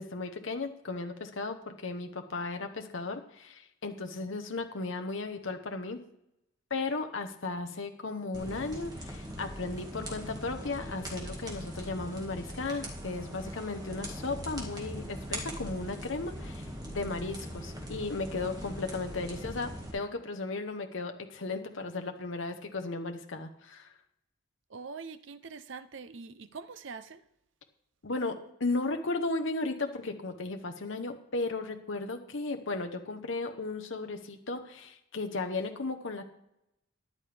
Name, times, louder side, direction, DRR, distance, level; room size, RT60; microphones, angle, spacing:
voice 1, 0.0-6.0 6.7-23.9 28.0-36.2, left 3 dB, 65° left, 5 dB, 1.0 m, -35 dB
sound 1, 8.3-19.9, equal, 20° right, 1.9 m, -41 dB
voice 2, 24.7-27.2, right 5 dB, 65° right, 12 dB, 0.6 m, -44 dB
13.5 x 10.5 x 3.4 m, 0.80 s
head